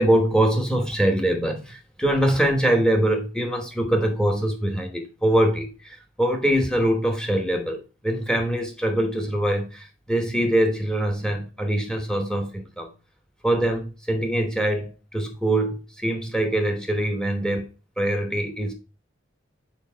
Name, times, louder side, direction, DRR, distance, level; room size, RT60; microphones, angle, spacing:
voice 1, 0.0-12.9 13.4-18.7, right 1 dB, 5° left, 1.0 m, -23 dB
5.4 x 4.6 x 4.5 m
head